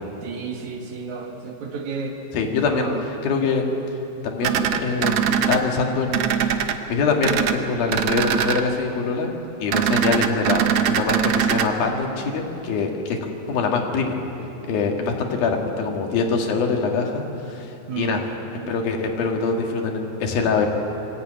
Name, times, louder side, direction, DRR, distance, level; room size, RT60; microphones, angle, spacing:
voice 1, 0.2-2.1 2.7-3.1 17.9-18.2, right 5 dB, 60° right, 3 dB, 2.7 m, -31 dB
voice 2, 2.3-3.7 4.2-9.3 9.6-14.2 14.6-18.3 18.7-20.7, left 4 dB, 85° left, 2 dB, 3.7 m, -24 dB
sound 1, 4.4-5.6 6.1-6.7 7.2-7.6 7.9-8.6 9.7-11.7, right 8 dB, 85° right, 1.3 m, -21 dB
24.5 x 15.5 x 9.1 m, 3.0 s
omnidirectional pair, 4.1 m